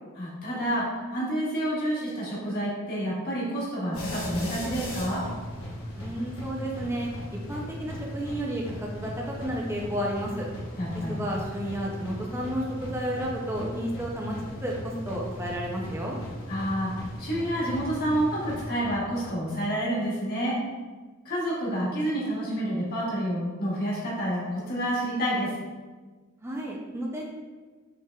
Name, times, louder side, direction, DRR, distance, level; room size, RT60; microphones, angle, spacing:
voice 1, 0.2-5.2 10.8-11.2 16.5-16.9 17.2-20.6 21.2-25.5, equal, 50° left, -6 dB, 1.5 m, -29 dB
sound 1, 3.9-19.3, left 1 dB, 80° left, 1.0 m, -37 dB
voice 2, 6.0-7.1 7.5-10.5 10.9-16.2 26.4-27.2, equal, 10° right, -2 dB, 0.5 m, -32 dB
5.6 x 3.4 x 2.3 m, 1.4 s
head